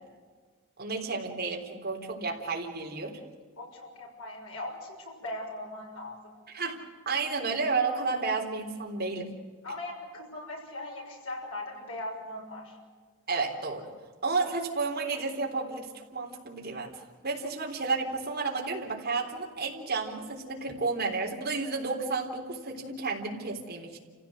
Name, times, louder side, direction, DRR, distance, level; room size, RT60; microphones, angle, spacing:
voice 1, 0.8-3.2 6.5-6.8 7.1-9.3 13.3-13.9 14.2-16.9 17.2-24.0, right 4 dB, 45° right, -1 dB, 3.7 m, -31 dB
voice 2, 3.6-6.4 9.6-12.8, left 1 dB, 75° left, 1 dB, 6.5 m, -39 dB
29.0 x 16.0 x 7.9 m, 1.5 s
head